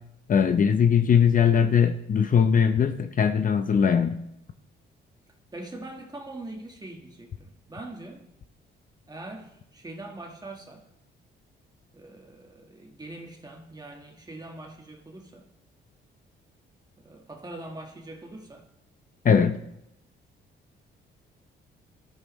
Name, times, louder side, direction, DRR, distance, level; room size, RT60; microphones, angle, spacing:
voice 1, 0.3-4.2 19.2-19.6, left 7 dB, 45° left, 0.7 m, -20 dB
voice 2, 5.5-8.2 9.1-10.8 11.9-15.5 17.0-18.7, right 2 dB, 20° right, 1.6 m, -42 dB
21.0 x 13.0 x 3.2 m
cardioid pair, 90°, 20 cm